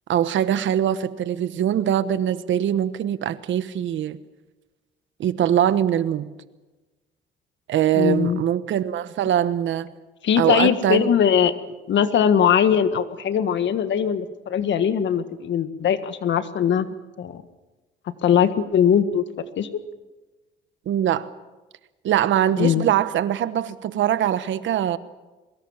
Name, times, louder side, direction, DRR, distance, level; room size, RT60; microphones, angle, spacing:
voice 1, 0.1-4.2 5.2-6.3 7.7-9.9 10.4-11.1 20.9-21.3 22.0-25.0, right 10 dB, 70° right, 14 dB, 1.2 m, -22 dB
voice 2, 7.9-8.4 10.2-11.5 11.9-16.9 17.2-17.4 18.2-19.2 19.6-19.7 22.6-22.8, left 8 dB, 65° left, 11 dB, 1.6 m, -20 dB
23.5 x 21.5 x 7.4 m, 1.2 s
cardioid pair, 90°, 20 cm